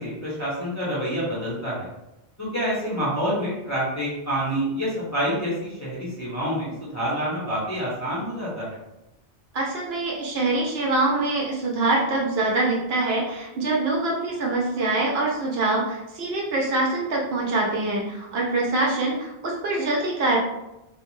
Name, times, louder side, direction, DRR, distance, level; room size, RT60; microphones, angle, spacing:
voice 1, 0.0-1.9 2.4-8.8, equal, 20° left, -8 dB, 0.7 m, -27 dB
voice 2, 9.5-20.4, right 2 dB, 70° right, -2 dB, 0.8 m, -24 dB
2.5 x 2.1 x 3.0 m, 0.92 s
omnidirectional pair, 1.1 m